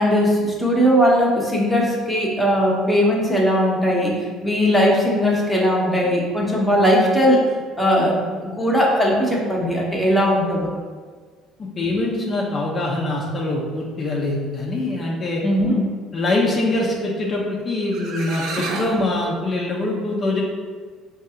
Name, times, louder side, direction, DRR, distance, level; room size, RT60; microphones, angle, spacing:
voice 1, 0.0-7.4 7.8-10.7 15.4-15.8, equal, 5° left, -4 dB, 1.0 m, -19 dB
voice 2, 11.6-15.4 16.1-20.4, left 2 dB, 40° left, -4 dB, 0.7 m, -23 dB
sound 1, 17.6-17.7 17.9-19.0, right 3 dB, 70° right, 0.5 m, -29 dB
5.3 x 2.8 x 2.4 m, 1.5 s
supercardioid pair, 85°, 0 cm